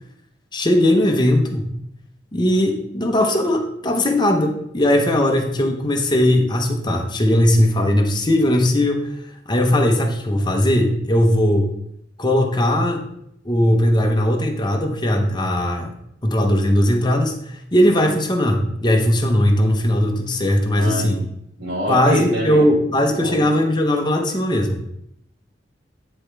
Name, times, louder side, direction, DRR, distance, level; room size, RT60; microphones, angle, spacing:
voice 1, 0.5-1.6 2.3-9.1 9.5-11.7 12.2-13.0 13.4-15.9 16.2-21.3 21.9-24.8, left 1 dB, 25° left, 3 dB, 0.8 m, -18 dB
voice 2, 20.7-21.2 21.6-22.7 23.1-23.5, equal, 60° right, -4 dB, 2.5 m, -25 dB
9.5 x 4.4 x 3.3 m, 0.74 s
head